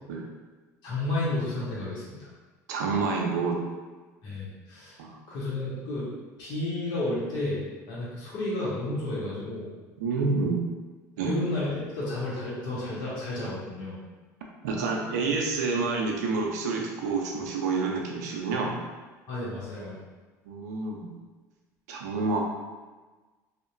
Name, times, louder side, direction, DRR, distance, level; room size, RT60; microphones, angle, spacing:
voice 1, 0.8-2.3 4.2-5.0 5.3-6.1 6.4-7.6 7.9-9.7 11.3-14.0 19.3-20.0, left 2 dB, 60° left, -7 dB, 0.9 m, -31 dB
voice 2, 2.7-3.6 5.0-5.2 10.0-10.6 11.2-11.4 14.6-18.7 20.5-21.1 21.9-22.4, right 4 dB, 80° right, 0 dB, 0.4 m, -28 dB
2.7 x 2.1 x 2.5 m, 1.3 s
hypercardioid pair, 70°, 9 cm